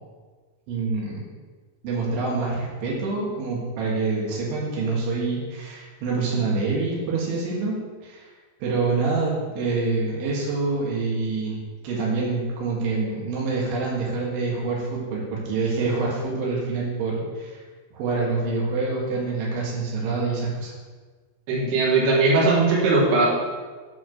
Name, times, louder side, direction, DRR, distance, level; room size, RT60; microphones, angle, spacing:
voice 1, 0.7-1.2 1.8-8.2 8.6-11.6 11.8-17.6 17.9-20.7, right 3 dB, 90° right, -4 dB, 4.2 m, -26 dB
voice 2, 21.5-23.3, right 3 dB, 65° right, -5 dB, 3.9 m, -19 dB
10.0 x 4.7 x 6.4 m, 1.4 s
omnidirectional pair, 5.3 m